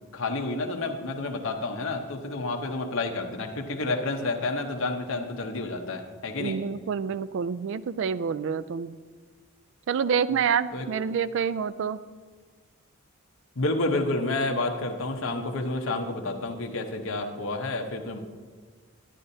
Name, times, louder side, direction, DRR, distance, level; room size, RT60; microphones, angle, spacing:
voice 1, 0.0-6.6 10.7-10.9 13.6-18.2, left 2 dB, 60° left, 3 dB, 0.8 m, -30 dB
voice 2, 6.4-8.9 9.9-12.0, right 6 dB, 60° right, 16 dB, 0.3 m, -27 dB
11.5 x 9.9 x 2.7 m, 1.5 s
head